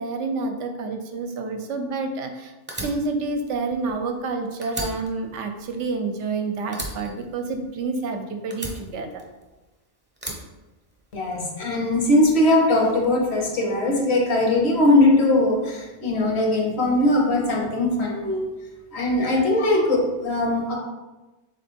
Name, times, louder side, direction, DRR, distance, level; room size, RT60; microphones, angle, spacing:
voice 1, 0.0-2.5 2.8-9.2, right 3 dB, 75° right, 5 dB, 0.9 m, -28 dB
Fire, 2.7-4.3 4.6-6.3 6.7-8.1 8.5-9.7 10.2-11.3, right 1 dB, 10° right, 0.5 m, -36 dB
voice 2, 11.1-18.5 18.9-20.8, left 1 dB, 60° left, 0 dB, 1.1 m, -20 dB
3.7 x 3.3 x 4.2 m, 1.1 s
omnidirectional pair, 1.3 m